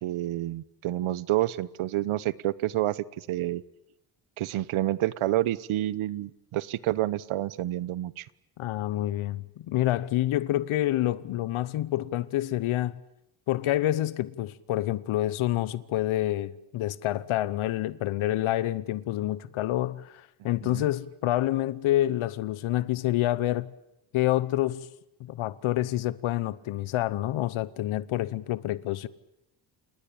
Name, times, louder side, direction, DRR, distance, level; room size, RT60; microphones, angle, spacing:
voice 1, 0.0-3.6 4.4-8.3 20.6-20.8, right 15 dB, 90° right, 1.1 m, -29 dB
voice 2, 8.6-13.0 13.5-23.7 24.1-24.9 25.2-29.1, left 14 dB, 90° left, 1.0 m, -28 dB
29.5 x 18.5 x 8.8 m
cardioid pair, 105°, 48 cm